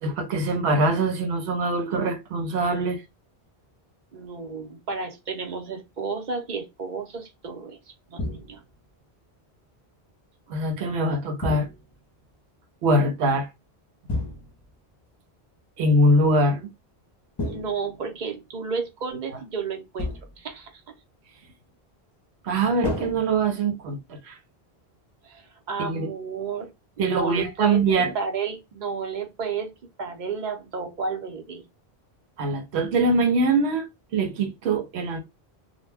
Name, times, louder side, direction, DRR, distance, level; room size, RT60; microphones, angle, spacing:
voice 1, 0.0-3.0 10.5-11.7 12.8-13.5 15.8-16.7 22.4-24.4 25.8-26.1 27.0-28.1 32.4-33.9 34.1-35.2, right 2 dB, 85° right, 0.9 m, -23 dB
voice 2, 4.1-8.6 17.4-20.8 25.2-26.7 27.0-27.8 28.1-29.7 30.0-31.7, right 5 dB, 50° right, 0.7 m, -32 dB
sound 1, 8.2-8.8 11.4-12.1 14.1-14.8 17.4-18.3 20.0-20.5 22.8-23.9, left 2 dB, 30° left, 0.6 m, -32 dB
2.2 x 2.1 x 3.2 m
omnidirectional pair, 1.1 m